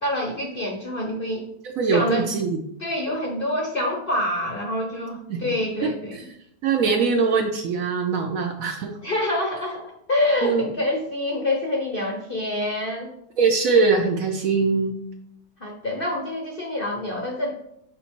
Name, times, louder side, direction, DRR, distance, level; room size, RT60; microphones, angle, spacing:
voice 1, 0.0-1.5 1.9-2.3 2.8-6.2 9.0-13.1 15.6-17.5, left 1 dB, 45° left, 0 dB, 0.7 m, -26 dB
voice 2, 1.8-2.6 5.3-5.4 5.8-6.3 6.6-9.0 10.4-10.7 13.4-15.0, right 4 dB, 65° right, 4 dB, 0.9 m, -22 dB
5.7 x 4.0 x 4.4 m, 0.76 s
omnidirectional pair, 1.8 m